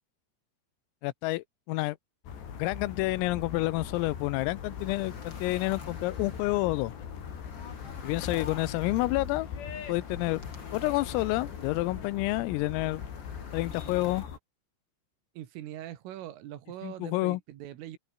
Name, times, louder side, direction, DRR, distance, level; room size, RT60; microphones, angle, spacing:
voice 1, 1.0-2.0 2.6-6.9 8.0-9.5 9.9-10.4 10.7-13.0 13.5-14.2 16.8-17.4, left 20 dB, 90° left, 3.6 m, -29 dB
sound 1, 2.3-14.4, left 7 dB, 60° left, 5.7 m, -40 dB
sound 2, 3.9-14.2, left 4 dB, 25° left, 3.8 m, -49 dB
voice 2, 15.4-18.0, right 12 dB, 75° right, 4.4 m, -42 dB
omnidirectional pair, 5.9 m